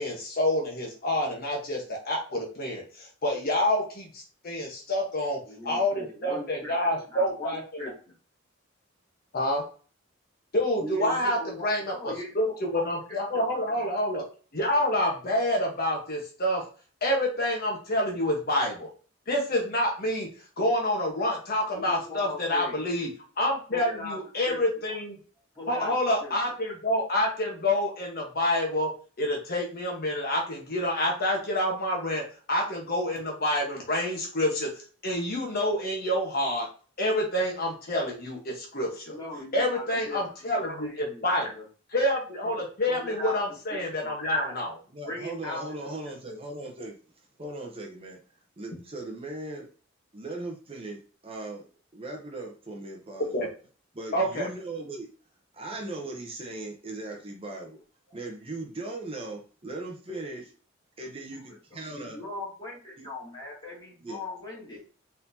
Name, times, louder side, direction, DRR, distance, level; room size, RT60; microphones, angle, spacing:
voice 1, 0.0-7.6 9.3-9.6 10.5-12.4 12.7-14.2 14.5-16.6 17.0-18.9 19.3-20.3 20.6-23.1 23.4-25.1 25.7-28.9 29.2-34.7 35.0-36.7 37.0-39.2 39.5-41.5 41.9-44.8 53.3-53.5 54.1-54.5, left 1 dB, 50° left, 0 dB, 1.1 m, -27 dB
voice 2, 5.5-7.9 10.8-12.4 12.7-13.8 21.7-22.8 23.7-24.2 24.5-24.6 25.5-26.0 26.2-26.3 39.1-41.7 42.4-42.6 42.9-43.4 43.7-44.1 45.0-45.6 58.1-58.2 61.5-61.6 61.9-64.8, left 2 dB, 20° left, -5 dB, 2.3 m, -40 dB
voice 3, 44.9-47.0 47.4-48.2 48.6-49.7 50.1-51.7 51.9-53.5 53.9-55.1 55.5-57.8 58.1-60.5 61.0-62.2 63.0-63.1 64.0-64.2, right 2 dB, 25° right, 1 dB, 0.8 m, -38 dB
4.3 x 4.1 x 2.7 m, 0.38 s
head